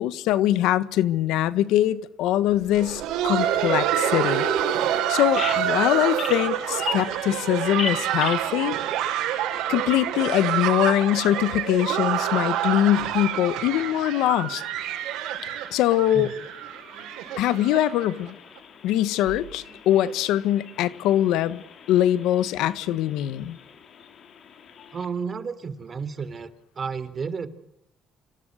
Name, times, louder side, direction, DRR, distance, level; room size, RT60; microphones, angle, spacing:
voice 1, 0.0-4.5 5.1-8.8 9.7-14.6 15.4-16.3 17.4-18.4 18.8-21.6 21.9-23.6, left 13 dB, 85° left, 1.5 m, -23 dB
Laughter, 2.6-18.3 18.6-18.7 19.3-19.4 19.9-20.1 21.2-21.3, right 11 dB, 85° right, 6.3 m, -27 dB
Bird vocalization bird call bird song, 5.3-25.1, left 7 dB, 55° left, 4.2 m, -41 dB
voice 2, 24.9-26.5 26.8-27.5, right 5 dB, 35° right, 3.6 m, -31 dB
29.5 x 26.5 x 6.6 m
cardioid pair, 100°, 0 cm